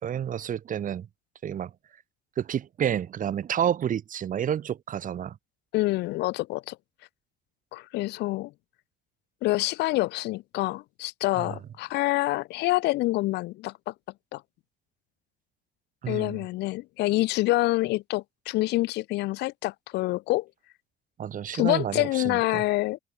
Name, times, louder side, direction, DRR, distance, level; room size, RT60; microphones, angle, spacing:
voice 1, 0.0-1.1 1.4-1.7 2.4-5.4 11.4-11.5 16.0-16.4 21.2-22.6, right 9 dB, 50° right, 5.9 m, -30 dB
voice 2, 5.7-6.8 7.7-8.5 9.4-13.9 14.3-14.4 16.1-20.5 21.5-23.0, left 19 dB, 85° left, 3.9 m, -27 dB
open air
cardioid pair, 110°, 17 cm